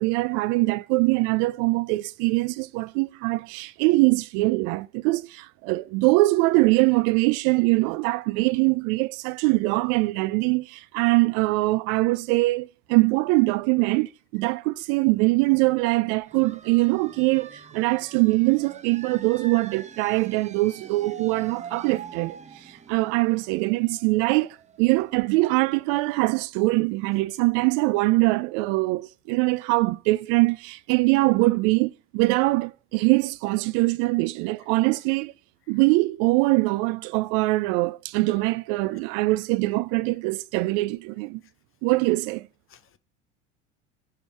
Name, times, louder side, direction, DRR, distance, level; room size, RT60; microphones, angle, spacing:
voice 1, 0.0-35.3 35.7-41.4 41.8-42.5, right 23 dB, 60° right, 0.5 m, -23 dB
sound 1, 16.2-25.7, right 6 dB, 20° right, 0.7 m, -45 dB
voice 2, 20.2-20.3 33.0-33.2 35.7-35.8 38.3-38.4 38.8-39.0 41.4-41.5 42.7-43.0, left 9 dB, 35° left, 0.9 m, -59 dB
10.0 x 3.7 x 4.6 m
hypercardioid pair, 75°, 37 cm